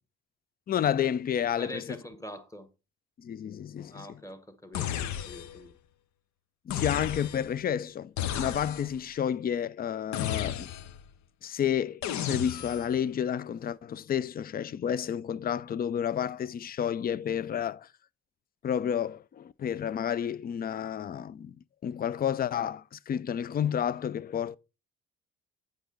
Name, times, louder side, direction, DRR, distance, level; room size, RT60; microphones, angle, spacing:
voice 1, 0.7-1.8 3.2-4.1 6.7-10.7 11.4-12.0 12.3-17.9 18.6-21.6 21.8-24.6, left 9 dB, 30° left, 0.4 m, -30 dB
voice 2, 1.6-2.7 3.9-5.7, equal, 10° left, 1.3 m, -44 dB
sound 1, 4.7-5.7 6.7-7.6 8.2-9.0 10.1-11.0 12.0-12.9, left 10 dB, 65° left, 0.7 m, -34 dB
7.9 x 5.2 x 3.9 m
supercardioid pair, 55°, 31 cm